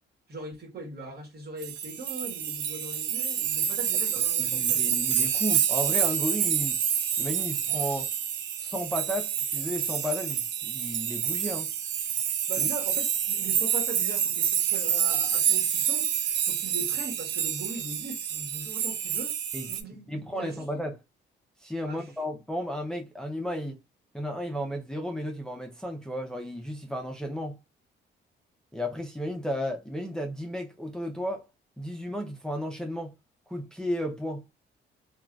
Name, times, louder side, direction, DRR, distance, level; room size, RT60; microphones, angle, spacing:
voice 1, 0.3-4.8 12.5-16.1 16.4-19.3 19.7-20.6 21.8-22.1, right 2 dB, 55° right, 1.2 m, -40 dB
sound 1, 1.6-19.8, right 8 dB, 70° right, 0.6 m, -28 dB
voice 2, 4.4-6.8 7.2-8.1 8.6-11.7 12.6-12.7 19.5-19.7 20.1-21.0 21.6-23.8 24.1-27.6 28.7-31.5 31.8-33.1 33.5-34.4, equal, 5° left, 0.5 m, -33 dB
3.6 x 2.3 x 2.3 m
cardioid pair, 90°, 20 cm